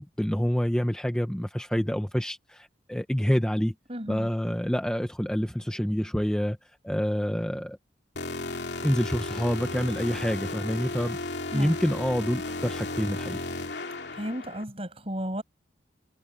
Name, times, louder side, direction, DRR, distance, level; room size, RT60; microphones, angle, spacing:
voice 1, 0.0-3.7 4.1-7.8 8.8-11.2 11.5-13.4, equal, 5° left, 0.7 m, -27 dB
voice 2, 3.9-4.3 11.5-11.8 14.1-15.4, equal, 30° right, 7.0 m, -33 dB
sound 1, 8.2-14.6, left 2 dB, 65° left, 2.6 m, -34 dB
head